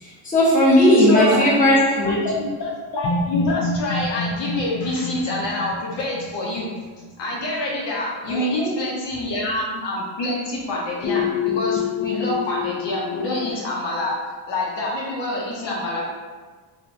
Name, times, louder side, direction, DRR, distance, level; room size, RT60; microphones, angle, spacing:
voice 1, 0.0-2.2 8.3-8.7, left 1 dB, 15° left, -7 dB, 0.9 m, -17 dB
voice 2, 1.0-1.5 2.0-6.7 7.2-14.2 14.5-16.0, left 1 dB, 60° left, -4 dB, 0.8 m, -26 dB
sound 1, 3.0-7.0 11.0-13.5, left 5 dB, 40° left, 0.4 m, -27 dB
3.0 x 2.4 x 2.5 m, 1.4 s
cardioid pair, 115°, 47 cm